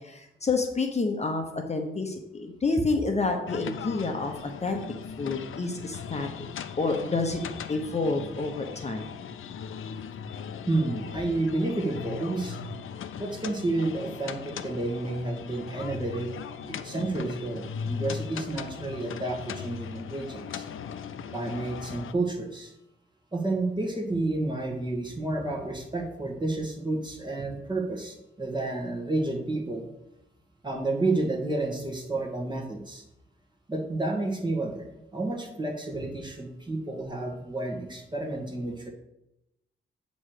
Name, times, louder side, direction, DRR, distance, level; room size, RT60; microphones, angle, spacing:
voice 1, 0.0-4.8 5.2-6.5 6.8-7.4 7.7-9.1, left 3 dB, 35° left, 3 dB, 0.8 m, -29 dB
sound 1, 3.5-22.1, left 7 dB, 80° left, 0.5 m, -38 dB
voice 2, 10.7-12.6 13.2-16.3 16.6-20.7 21.3-22.7 23.3-29.9 30.6-33.0 33.7-38.9, right 2 dB, 20° right, 1 dB, 1.5 m, -30 dB
8.6 x 3.1 x 6.5 m, 0.87 s
cardioid pair, 100°, 21 cm